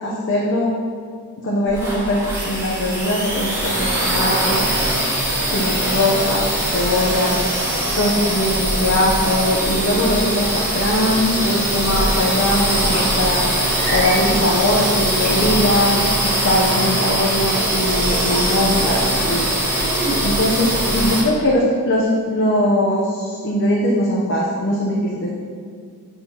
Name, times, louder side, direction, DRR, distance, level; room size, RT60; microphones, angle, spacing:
voice 1, 0.0-0.7 1.4-4.7 5.5-19.4 20.2-25.3, left 1 dB, 55° left, -4 dB, 0.8 m, -21 dB
sound 1, 1.7-21.2, right 1 dB, 10° right, 1.5 m, -21 dB
sound 2, 12.9-13.1 13.8-14.5 15.2-15.8 17.3-17.7 18.2-19.3 19.8-20.2, right 1 dB, 35° right, 1.9 m, -28 dB
8.7 x 6.7 x 2.9 m, 2.1 s
head